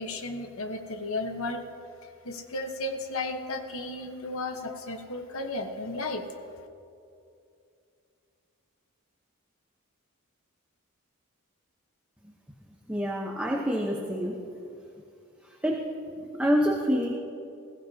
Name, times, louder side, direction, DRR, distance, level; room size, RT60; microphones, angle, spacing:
voice 1, 0.0-1.6 2.0-6.2, left 2 dB, 70° left, 5 dB, 1.2 m, -34 dB
voice 2, 12.9-14.4 15.6-15.9 16.3-17.1, equal, 5° right, -2 dB, 1.0 m, -26 dB
21.0 x 15.5 x 2.9 m, 2.5 s
head